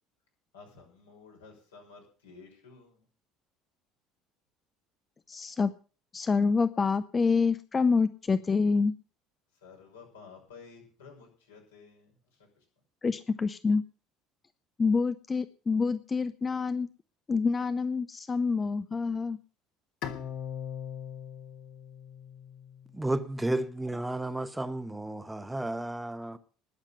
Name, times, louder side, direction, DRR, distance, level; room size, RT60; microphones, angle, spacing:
voice 1, 0.5-3.0 9.6-12.1, left 5 dB, 75° left, 5.9 m, -52 dB
voice 2, 5.3-5.7 6.1-8.9 13.0-13.8 14.8-16.9 17.3-19.4, left 4 dB, 25° left, 0.6 m, -27 dB
Bowed string instrument, 20.0-23.2, left 8 dB, 55° left, 1.4 m, -40 dB
voice 3, 22.9-26.4, right 1 dB, 10° right, 1.0 m, -32 dB
20.5 x 7.4 x 5.6 m
figure-of-eight pair, 60°, 0 cm